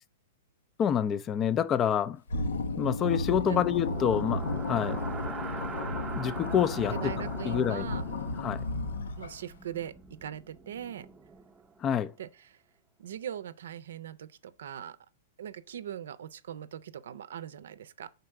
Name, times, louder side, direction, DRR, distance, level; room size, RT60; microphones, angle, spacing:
voice 1, 0.8-2.2 2.8-5.0 6.1-7.1 7.5-7.9 8.4-8.6 11.8-12.1, left 9 dB, 25° left, 0.4 m, -27 dB
sound 1, 2.3-9.5, left 2 dB, 85° left, 0.7 m, -33 dB
sound 2, 3.8-11.8, right 5 dB, 15° right, 0.7 m, -43 dB
voice 2, 6.9-8.0 9.2-11.1 12.2-12.6 13.0-15.0 15.4-18.1, right 10 dB, 75° right, 0.6 m, -40 dB
5.3 x 4.0 x 5.7 m
hypercardioid pair, 130°, 0 cm